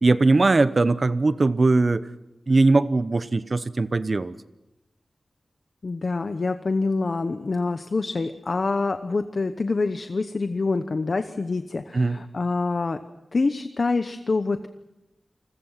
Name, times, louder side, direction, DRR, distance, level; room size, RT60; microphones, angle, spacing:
voice 1, 0.0-2.0 2.5-4.3 11.9-12.2, right 3 dB, 45° right, 13 dB, 0.8 m, -20 dB
voice 2, 5.8-13.0 13.3-14.7, left 3 dB, 55° left, 9 dB, 1.0 m, -26 dB
28.5 x 21.0 x 5.8 m, 0.96 s
wide cardioid pair, 95°, 0 cm